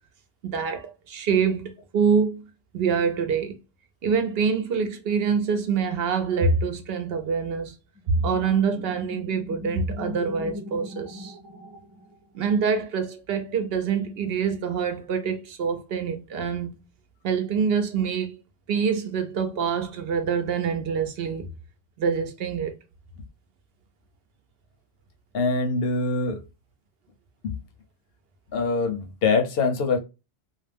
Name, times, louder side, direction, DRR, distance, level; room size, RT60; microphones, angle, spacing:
voice 1, 0.4-2.4 2.7-3.5 4.0-7.7 8.1-11.4 12.3-16.8 17.2-18.4 18.7-21.5 22.0-22.8, right 6 dB, 70° right, 0.8 m, -25 dB
sound 1, 7.9-12.4, left 1 dB, 25° right, 0.9 m, -38 dB
voice 2, 25.3-26.4 27.4-27.6 28.5-30.0, left 3 dB, 70° left, 0.8 m, -24 dB
2.4 x 2.1 x 3.2 m
omnidirectional pair, 1.1 m